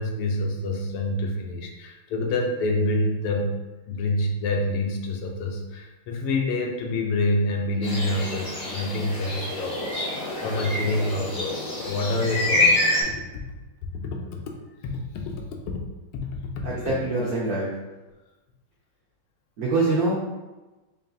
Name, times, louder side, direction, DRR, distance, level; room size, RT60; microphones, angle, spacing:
voice 1, 0.0-3.5 3.9-12.9 14.0-14.2 14.8-15.4 15.7-15.8 16.1-16.3 16.6-16.7, left 2 dB, 80° left, 1 dB, 1.5 m, -27 dB
sound 1, 7.8-13.0, left 2 dB, 50° left, 0.4 m, -26 dB
voice 2, 16.6-17.7 19.6-20.2, right 2 dB, 80° right, -4 dB, 0.8 m, -24 dB
5.3 x 2.3 x 2.6 m, 1.1 s
omnidirectional pair, 2.4 m